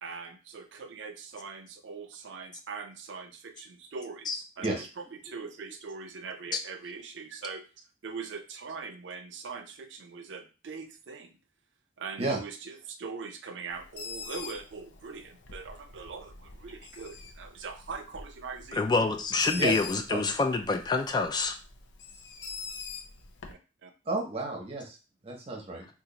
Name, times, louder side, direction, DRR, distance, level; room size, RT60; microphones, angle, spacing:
voice 1, 0.0-11.4 12.0-18.8 23.5-23.9, right 5 dB, 90° right, 7 dB, 0.5 m, -42 dB
Bird, 13.7-23.5, left 4 dB, 85° left, 0.5 m, -45 dB
voice 2, 18.7-21.6, left 3 dB, 25° left, 5 dB, 0.3 m, -27 dB
voice 3, 24.1-25.0 25.2-25.9, right 2 dB, 35° right, 2 dB, 0.8 m, -31 dB
2.8 x 2.4 x 3.8 m, 0.33 s
head